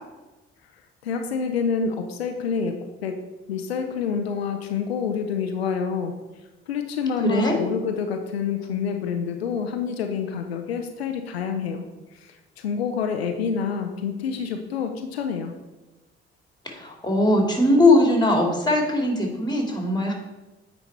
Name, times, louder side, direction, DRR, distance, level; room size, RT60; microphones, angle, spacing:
voice 1, 1.0-3.2 3.5-6.1 6.7-11.8 12.1-15.5, left 6 dB, 90° left, 5 dB, 0.5 m, -27 dB
voice 2, 7.2-7.6 16.6-20.1, left 1 dB, 15° left, 2 dB, 2.2 m, -20 dB
9.2 x 4.0 x 4.4 m, 1.1 s
figure-of-eight pair, 40°, 30 cm